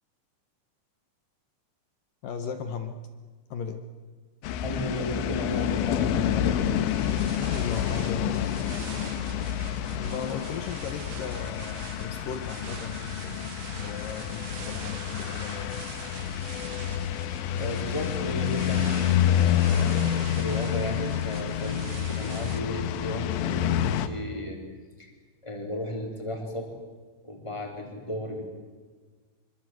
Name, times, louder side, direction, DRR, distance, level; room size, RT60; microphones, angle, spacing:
voice 1, 2.2-3.0 3.5-3.8 7.4-8.6 10.0-13.5 13.8-15.8, left 6 dB, 65° left, 7 dB, 2.3 m, -37 dB
sound 1, 4.4-24.1, left 10 dB, 80° left, 3.3 m, -28 dB
voice 2, 4.6-6.6 17.5-19.9 20.4-24.6 25.0-25.1 25.4-26.7 27.2-28.5, left 1 dB, 5° left, 1 dB, 3.7 m, -34 dB
sound 2, 5.2-7.3 11.2-13.3, left 1 dB, 25° left, 2.6 m, -52 dB
sound 3, 6.9-22.6, right 11 dB, 70° right, 2.2 m, -45 dB
25.5 x 24.5 x 7.8 m, 1.4 s
omnidirectional pair, 5.2 m